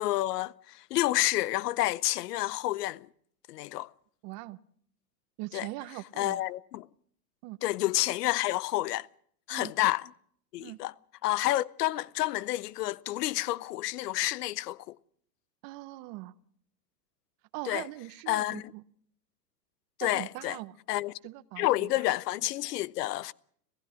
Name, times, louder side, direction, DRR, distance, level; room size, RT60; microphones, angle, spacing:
voice 1, 0.0-3.1 3.5-3.9 5.5-5.7 6.2-6.9 7.6-9.1 9.5-10.1 10.5-10.9 11.2-15.0 17.6-17.9 18.3-18.7 20.0-20.6 20.9-21.1 21.6-23.3, left 16 dB, 75° left, 0.7 m, -29 dB
voice 2, 4.2-4.6 5.4-6.4 7.4-7.6 9.5-9.7 10.6-10.8 15.6-16.3 17.5-18.8 20.0-20.7 21.2-22.0, right 19 dB, 45° right, 0.9 m, -41 dB
26.5 x 15.5 x 6.3 m
hypercardioid pair, 115°, 48 cm